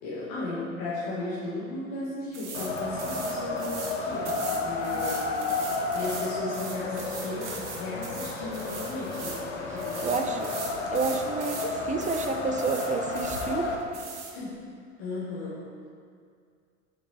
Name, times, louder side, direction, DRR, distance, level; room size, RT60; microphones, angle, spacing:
voice 1, 0.0-5.4 5.9-10.5 13.9-14.0 14.3-14.7 15.0-15.7, left 2 dB, 60° left, -8 dB, 1.8 m, -36 dB
sound 1, 2.3-2.7 3.0-4.0 4.2-9.4 9.8-11.7 12.0-12.3 12.6-13.5 13.9-14.3, right 5 dB, 80° right, 1.0 m, -40 dB
Wind, 2.5-13.8, left 3 dB, 75° left, 1.0 m, -32 dB
voice 2, 10.0-10.5 10.9-13.7, right 4 dB, 20° right, 6 dB, 0.7 m, -30 dB
7.6 x 5.8 x 4.3 m, 2.2 s
figure-of-eight pair, 65°, 35 cm